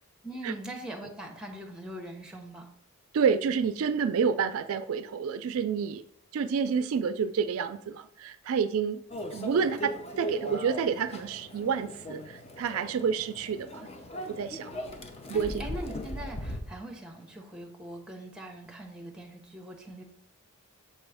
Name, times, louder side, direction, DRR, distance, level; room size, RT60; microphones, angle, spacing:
voice 1, 0.2-2.7 15.3-20.0, right 1 dB, 5° right, 2 dB, 0.8 m, -41 dB
voice 2, 3.1-6.0 6.3-9.0 9.3-13.9 14.3-14.7 15.3-15.7, right 6 dB, 75° right, 11 dB, 0.3 m, -29 dB
Microwave oven, 9.1-16.6, equal, 30° left, 0.5 m, -39 dB
6.7 x 3.0 x 4.8 m, 0.70 s
head